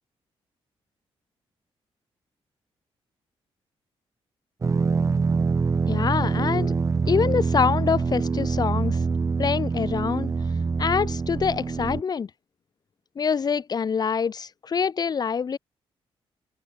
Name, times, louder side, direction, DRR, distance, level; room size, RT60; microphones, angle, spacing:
sound 1, 4.6-12.0, right 4 dB, 30° right, 6.2 m, -25 dB
voice 1, 5.9-6.7 7.1-9.0 9.4-10.3 10.8-12.3 13.2-15.6, left 6 dB, 40° left, 1.9 m, -25 dB
open air
cardioid pair, 125°, 10 cm